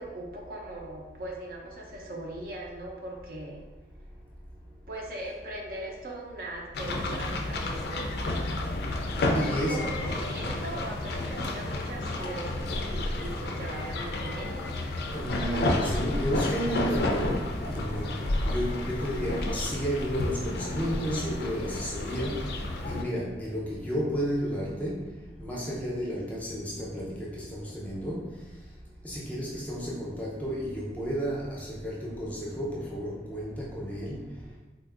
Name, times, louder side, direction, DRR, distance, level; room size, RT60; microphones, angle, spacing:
voice 1, 0.0-3.6 4.9-8.1 9.2-14.6, right 2 dB, 55° right, -2 dB, 0.5 m, -40 dB
sound 1, 6.7-23.0, left 2 dB, 65° left, 0.3 m, -31 dB
voice 2, 9.3-9.8 15.1-28.4 29.0-34.3, equal, 10° left, -6 dB, 0.5 m, -32 dB
3.8 x 2.5 x 2.4 m, 1.1 s
head